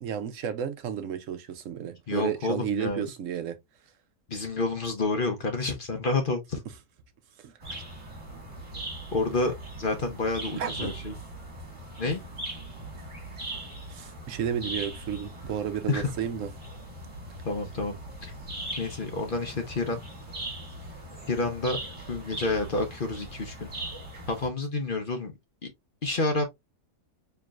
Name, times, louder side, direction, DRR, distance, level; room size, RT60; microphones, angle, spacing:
voice 1, 0.0-3.6 7.4-7.5 10.6-10.9 13.9-16.5, right 8 dB, 65° right, 0.9 m, -32 dB
voice 2, 2.1-3.1 4.3-6.6 9.1-11.1 12.0-12.2 15.9-16.1 17.4-18.3 18.8-20.0 21.3-21.8 22.1-23.7 24.3-25.3 26.0-26.4, left 3 dB, 45° left, 0.8 m, -29 dB
sound 1, 7.6-24.5, right 1 dB, 20° right, 1.5 m, -40 dB
4.6 x 3.0 x 2.4 m
omnidirectional pair, 1.6 m